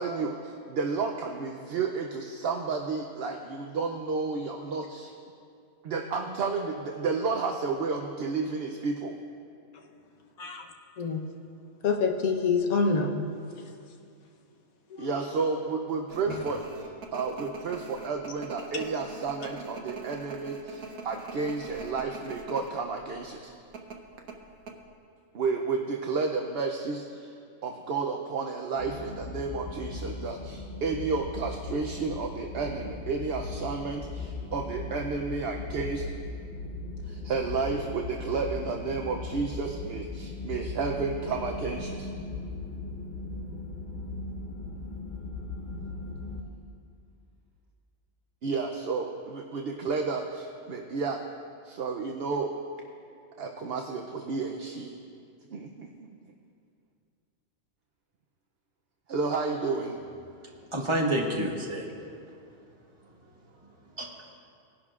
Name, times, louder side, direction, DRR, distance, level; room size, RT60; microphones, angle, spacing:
voice 1, 0.0-5.1 5.8-9.1 15.0-23.5 25.3-27.4 27.6-36.1 37.1-42.1 46.1-46.2 48.4-51.2 51.6-52.6 53.4-54.9 55.5-56.1 59.1-60.0, right 4 dB, 55° right, 2 dB, 0.7 m, -31 dB
voice 2, 11.0-11.3 11.8-13.3 15.0-15.1, left 4 dB, 75° left, 2 dB, 1.4 m, -26 dB
sound 1, 16.1-22.7 23.0-23.2 23.7-24.8, right 4 dB, 85° right, 1.5 m, -42 dB
sound 2, 28.8-46.4, left 3 dB, 40° left, 0.9 m, -38 dB
voice 3, 60.4-62.1 63.6-64.1, right 1 dB, 20° right, -1 dB, 1.3 m, -30 dB
19.5 x 11.0 x 2.4 m, 2.4 s
omnidirectional pair, 1.5 m